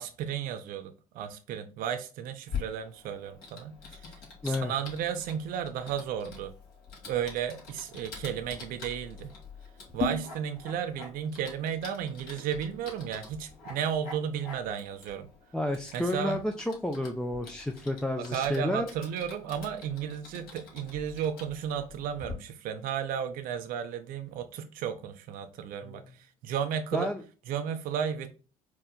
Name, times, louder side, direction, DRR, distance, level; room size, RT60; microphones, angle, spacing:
voice 1, 0.0-6.5 7.1-9.3 9.9-15.3 15.9-16.4 18.2-27.1 27.5-28.3, right 8 dB, 55° right, 0.5 m, -34 dB
Typing, 2.5-22.3, left 5 dB, 60° left, 2.0 m, -44 dB
voice 2, 15.5-18.9 25.8-26.0 26.9-27.2, left 1 dB, 5° left, 0.4 m, -31 dB
4.4 x 2.1 x 3.7 m
hypercardioid pair, 70°, 18 cm